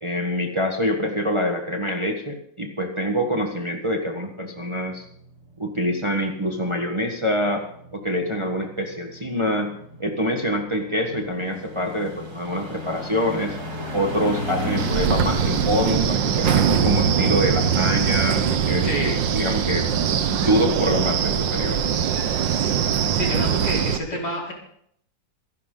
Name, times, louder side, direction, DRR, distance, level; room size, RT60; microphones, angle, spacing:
voice 1, 0.0-5.0 5.6-7.6 7.9-13.6 13.9-19.9 20.4-21.8, equal, 15° right, 3 dB, 1.4 m, -25 dB
sound 1, 4.0-20.6 20.9-21.0, equal, 55° right, 3.9 m, -35 dB
Wind, 14.8-24.0, right 8 dB, 90° right, 1.7 m, -22 dB
voice 2, 23.1-24.5, equal, 65° left, -3 dB, 5.0 m, -28 dB
26.0 x 11.0 x 3.9 m, 0.68 s
omnidirectional pair, 1.9 m